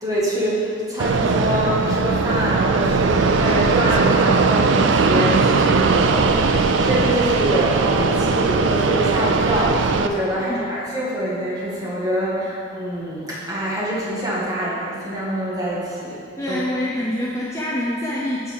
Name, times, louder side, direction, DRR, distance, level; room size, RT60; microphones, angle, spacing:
voice 1, 0.0-16.6, right 1 dB, 20° right, -6 dB, 1.8 m, -25 dB
Fixed-wing aircraft airplane, 1.0-10.1, right 4 dB, 70° right, 0.5 m, -19 dB
voice 2, 16.4-18.5, left 1 dB, 15° left, -5 dB, 0.7 m, -25 dB
8.6 x 4.7 x 7.1 m, 2.4 s
head